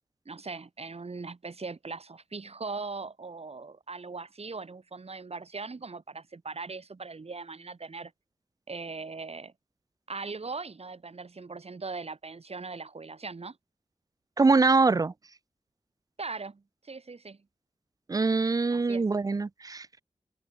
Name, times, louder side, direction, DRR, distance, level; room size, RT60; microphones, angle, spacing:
voice 1, 0.3-8.1 8.7-9.5 10.1-13.6 16.2-17.4 18.7-19.1, right 4 dB, 65° right, 5.9 m, -40 dB
voice 2, 14.4-15.1 18.1-19.9, right 3 dB, 35° right, 0.4 m, -23 dB
cardioid pair, 45°, 11 cm